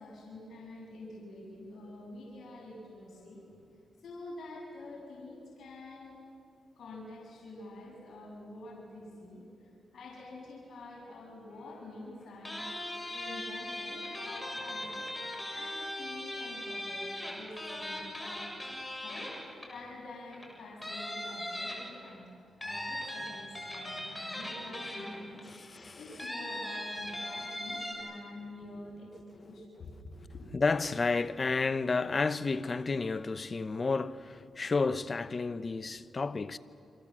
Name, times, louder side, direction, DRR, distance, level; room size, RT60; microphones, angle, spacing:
voice 1, 0.0-3.6 4.0-6.1 6.8-15.1 15.5-18.5 19.0-19.3 19.6-29.9 30.3-30.4, left 2 dB, 60° left, 7.9 m, -47 dB
sound 1, 12.4-19.9 20.3-20.5 20.8-22.1 22.6-25.4 26.2-27.9, left 1 dB, 10° left, 7.2 m, -39 dB
voice 2, 25.5-26.0 30.2-30.3 30.5-36.6, left 4 dB, 35° left, 0.9 m, -31 dB
29.5 x 25.5 x 7.6 m
cardioid pair, 90°, 0 cm